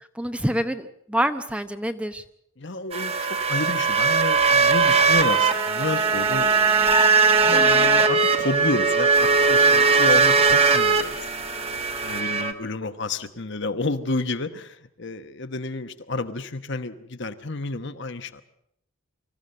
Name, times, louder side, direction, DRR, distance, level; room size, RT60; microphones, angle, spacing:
voice 1, 0.2-2.2 7.5-7.9, equal, 5° right, 9 dB, 0.7 m, -27 dB
voice 2, 2.6-6.9 7.4-11.2 12.0-18.4, left 2 dB, 55° left, 10 dB, 1.1 m, -30 dB
sound 1, 2.9-12.5, right 4 dB, 30° right, 1.4 m, -19 dB
25.0 x 14.5 x 7.8 m, 0.74 s
head